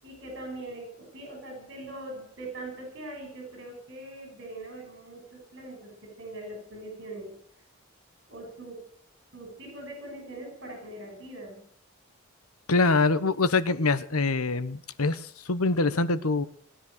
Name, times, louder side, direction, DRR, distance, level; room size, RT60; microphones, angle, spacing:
voice 1, 0.0-7.3 8.3-8.8 9.3-11.6, right 2 dB, 50° right, 1 dB, 6.8 m, -41 dB
voice 2, 12.7-16.5, left 3 dB, 90° left, 14 dB, 1.2 m, -24 dB
19.5 x 10.5 x 6.8 m, 0.65 s
head